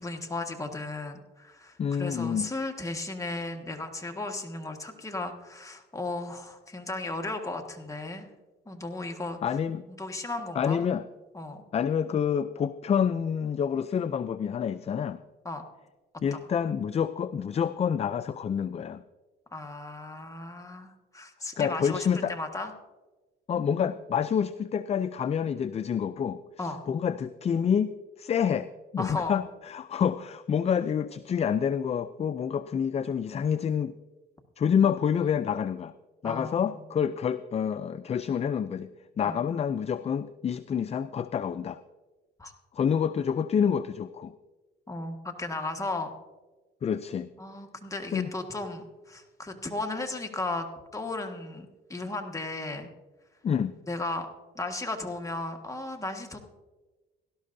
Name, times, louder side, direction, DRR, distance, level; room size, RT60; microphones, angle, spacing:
voice 1, 0.0-8.3 8.6-9.4 10.0-10.8 11.3-11.6 15.4-15.6 16.3-16.6 19.5-22.7 26.6-26.8 29.0-29.4 36.2-36.9 39.2-39.4 42.4-42.5 44.9-46.2 47.4-50.7 50.9-52.9 53.9-54.3 54.5-56.4, left 2 dB, 15° left, 3 dB, 1.5 m, -35 dB
voice 2, 1.8-2.5 9.4-9.9 10.6-11.0 11.7-15.2 16.2-19.0 21.6-22.4 23.5-33.9 34.6-35.9 36.2-38.9 39.2-41.8 42.7-44.3 46.8-47.3 48.1-48.3 53.4-53.7, left 7 dB, 35° left, 13 dB, 0.4 m, -28 dB
17.5 x 12.0 x 2.6 m, 1.2 s
cardioid pair, 90°, 20 cm